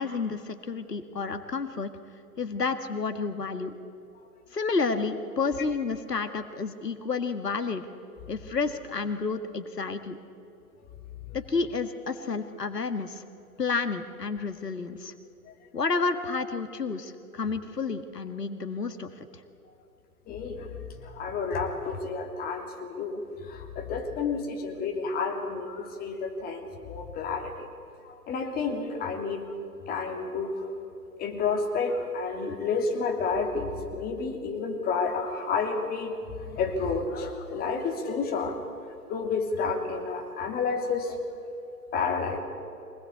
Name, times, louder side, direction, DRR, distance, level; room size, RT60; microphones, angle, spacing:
voice 1, 0.0-1.9 2.4-3.8 4.5-7.9 8.3-10.2 11.3-13.2 13.6-15.1 15.7-19.4, left 4 dB, 80° left, 9 dB, 1.8 m, -30 dB
voice 2, 20.3-27.7 28.0-29.5 29.9-30.7 31.2-38.6 39.1-41.2 41.9-42.4, left 4 dB, 20° left, 2 dB, 2.9 m, -30 dB
24.5 x 19.5 x 8.4 m, 2.7 s
figure-of-eight pair, 125°, 47 cm